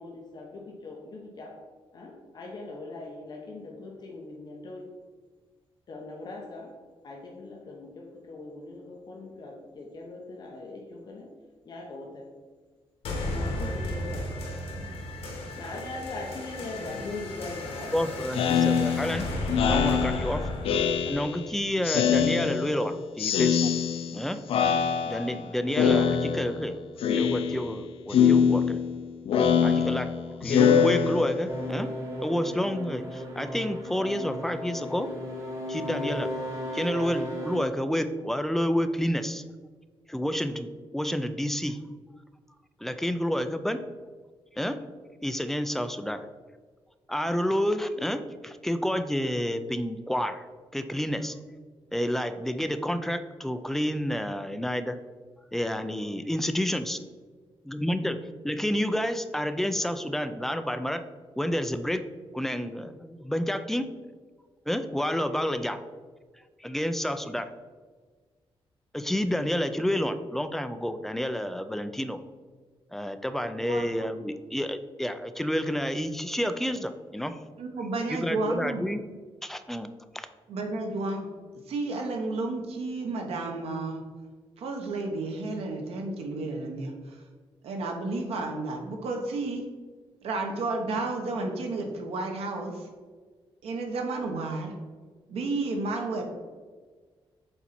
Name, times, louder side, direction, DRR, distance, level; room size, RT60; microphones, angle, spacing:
voice 1, 0.0-1.6 1.9-4.9 5.9-6.7 7.0-11.3 11.6-12.3 13.2-14.3 15.6-17.9, left 2 dB, 45° left, -1 dB, 0.9 m, -41 dB
sound 1, 13.0-22.1, left 1 dB, 85° left, 1.4 m, -34 dB
voice 2, 17.9-19.3 19.6-20.5 21.1-23.7 24.1-24.4 25.1-26.8 27.1-28.8 29.6-30.1 30.4-31.9 32.2-35.1 35.7-36.3 36.7-39.4 40.1-41.8 42.8-43.8 44.6-44.8 45.2-46.3 47.1-50.4 50.7-51.4 51.9-55.0 55.5-57.0 57.7-58.2 58.4-61.0 61.4-62.0 62.3-63.9 64.7-65.8 66.6-67.5 68.9-72.2 72.9-77.4 78.1-79.0 79.4-79.9 80.1-80.3, equal, 5° left, 9 dB, 0.3 m, -29 dB
Speech synthesizer, 18.3-21.5 21.8-22.9 23.2-24.2 24.5-25.4 25.8-26.7 27.0-27.8 28.1-31.6, left 7 dB, 70° left, 0.5 m, -24 dB
sound 2, 31.5-37.6, equal, 30° right, 1.3 m, -35 dB
voice 3, 77.6-78.8 80.5-81.3 81.7-84.0 84.6-86.9 87.6-89.7 90.2-92.7 93.6-94.7 95.3-96.2, right 3 dB, 85° right, 2 dB, 1.0 m, -31 dB
7.1 x 4.1 x 4.2 m, 1.5 s
wide cardioid pair, 170°, 10 cm